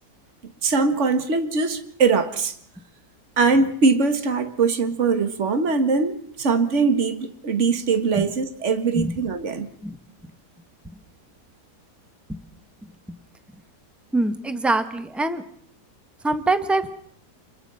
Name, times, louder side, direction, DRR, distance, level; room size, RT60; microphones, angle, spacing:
voice 1, 0.6-2.6 3.4-9.7, right 4 dB, 45° right, 9 dB, 2.0 m, -21 dB
voice 2, 14.1-15.4 16.2-16.9, right 2 dB, ahead, 9 dB, 1.3 m, -23 dB
29.5 x 22.0 x 5.6 m, 0.64 s
omnidirectional pair, 1.7 m